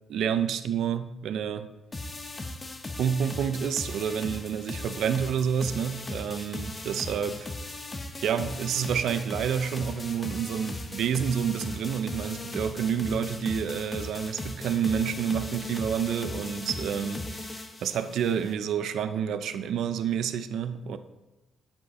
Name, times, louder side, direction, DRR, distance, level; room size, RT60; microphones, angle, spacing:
voice 1, 0.1-1.7 3.0-7.5 8.2-21.0, right 8 dB, 75° right, 0.5 m, -29 dB
sound 1, 1.9-18.5, left 2 dB, 25° left, 0.8 m, -38 dB
10.0 x 5.1 x 3.0 m
cardioid pair, 90°, 0 cm